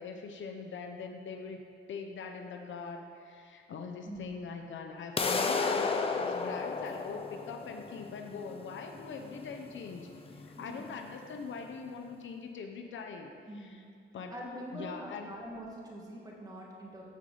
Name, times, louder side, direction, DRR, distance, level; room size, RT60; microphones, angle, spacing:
voice 1, 0.0-1.6 1.9-13.8 14.1-14.4 14.7-15.4, left 5 dB, 70° left, 4 dB, 0.7 m, -42 dB
sound 1, 5.2-11.1, left 4 dB, 25° left, 0.6 m, -33 dB
voice 2, 10.5-10.9 13.5-13.7 14.3-17.0, equal, 20° right, -3 dB, 1.8 m, -44 dB
14.5 x 5.0 x 3.9 m, 2.4 s
cardioid pair, 115°, 21 cm